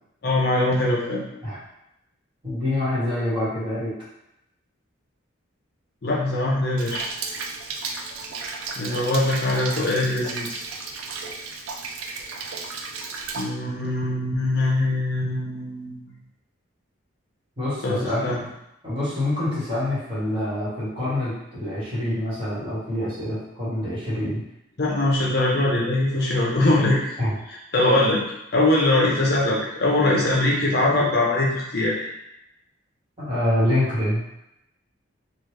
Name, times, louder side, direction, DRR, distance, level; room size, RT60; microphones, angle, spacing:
voice 1, 0.2-1.2 6.0-7.1 8.8-10.6 13.4-16.0 17.8-18.4 24.8-27.0 27.7-28.2 28.5-31.9, left 2 dB, 50° left, -4 dB, 0.6 m, -22 dB
voice 2, 2.4-3.9 17.6-18.4 18.8-24.4 27.2-27.3 33.2-34.2, left 1 dB, 25° right, -10 dB, 1.3 m, -26 dB
Rain, 6.8-13.4, right 4 dB, 90° right, 0.4 m, -34 dB
3.0 x 2.3 x 3.3 m, 0.85 s
head